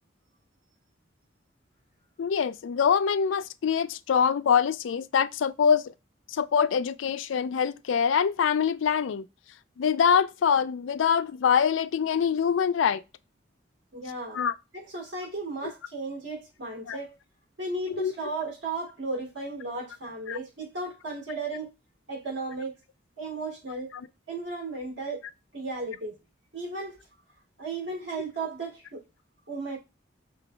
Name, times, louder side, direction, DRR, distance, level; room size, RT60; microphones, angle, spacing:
voice 1, 2.2-5.9 6.3-9.2 9.8-13.0 14.3-14.5 16.9-17.0 17.9-18.1 20.3-20.4, left 7 dB, 75° left, 0.4 m, -24 dB
voice 2, 13.9-14.4 14.7-17.1 17.6-21.7 22.1-22.7 23.2-23.9 24.3-25.2 25.5-26.2 26.5-27.0 27.6-29.0 29.5-29.8, right 3 dB, 70° right, 2.6 m, -35 dB
5.7 x 3.8 x 2.3 m
head